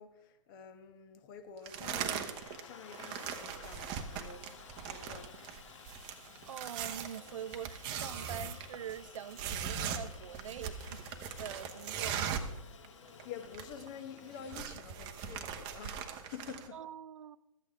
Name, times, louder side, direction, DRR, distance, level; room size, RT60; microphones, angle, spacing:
voice 1, 0.0-2.3 2.6-4.4 4.8-5.5 13.2-16.8, left 7 dB, 35° left, 1.1 m, -48 dB
sound 1, 1.7-2.6 2.9-12.6 12.8-12.9 13.2-13.9 14.2-16.7, right 8 dB, 25° right, 0.9 m, -40 dB
Aircraft, 2.1-14.6, left 6 dB, 60° left, 1.1 m, -54 dB
voice 2, 6.5-11.0 11.4-12.3 16.7-17.4, right 9 dB, 65° right, 0.5 m, -44 dB
13.5 x 8.2 x 3.6 m
hypercardioid pair, 135°, 18 cm